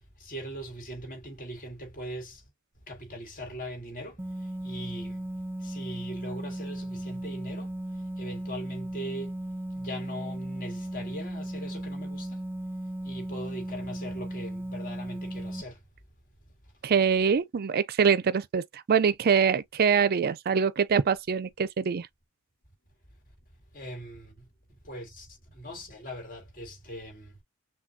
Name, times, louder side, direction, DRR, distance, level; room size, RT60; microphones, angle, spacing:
voice 1, 0.2-2.4 2.9-5.3 5.6-9.3 9.7-12.4 13.0-15.8 23.7-24.5 24.8-27.4, equal, 40° left, 1.8 m, -41 dB
sound 1, 4.2-15.6, right 1 dB, 10° right, 1.1 m, -36 dB
voice 2, 16.8-22.1, right 6 dB, 45° right, 0.4 m, -24 dB
6.0 x 2.2 x 2.7 m
head